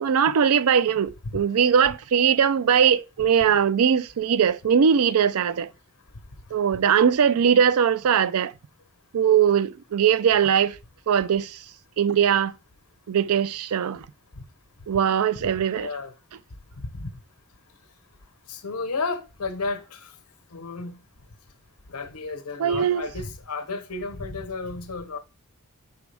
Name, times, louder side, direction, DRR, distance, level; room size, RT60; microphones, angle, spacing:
voice 1, 0.0-5.7 6.5-8.5 9.1-10.8 11.1-11.6 12.0-12.5 13.1-14.0 14.9-15.9 22.6-23.0, right 7 dB, 75° right, 0.4 m, -20 dB
voice 2, 15.4-16.1 16.8-17.1 18.5-20.1 20.5-21.0 21.9-25.2, left 3 dB, 90° left, 1.0 m, -33 dB
6.0 x 4.7 x 3.3 m
head